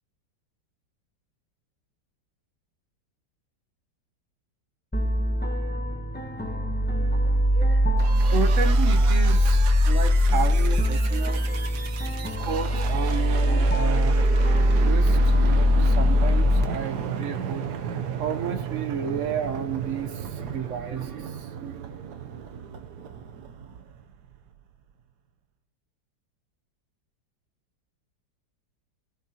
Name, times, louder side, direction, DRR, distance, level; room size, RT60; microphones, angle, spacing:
sound 1, 4.9-16.6, equal, 10° left, 0.5 m, -21 dB
voice 1, 7.1-11.7 12.3-17.8 18.2-22.6, right 6 dB, 50° right, 10 dB, 1.1 m, -33 dB
sound 2, 8.0-24.6, right 7 dB, 70° right, 1.3 m, -35 dB
24.5 x 14.5 x 2.9 m, 0.63 s
omnidirectional pair, 1.9 m